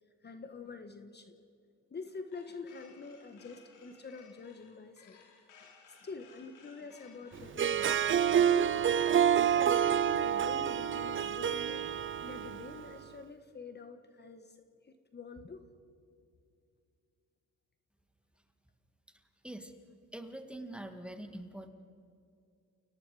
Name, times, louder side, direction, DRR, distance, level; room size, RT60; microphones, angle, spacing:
voice 1, 0.2-1.3 1.9-5.2 5.6-8.0 8.3-8.8 9.5-11.8 12.2-14.6 14.8-15.6, left 4 dB, 35° left, 8 dB, 1.5 m, -46 dB
sound 1, 2.3-10.4, left 6 dB, 80° left, 3.7 m, -59 dB
Harp, 7.4-12.9, right 9 dB, 40° right, 0.7 m, -28 dB
voice 2, 20.1-21.7, right 1 dB, 5° right, 6 dB, 2.2 m, -44 dB
30.0 x 18.5 x 5.0 m, 2.5 s
cardioid pair, 90°, 30 cm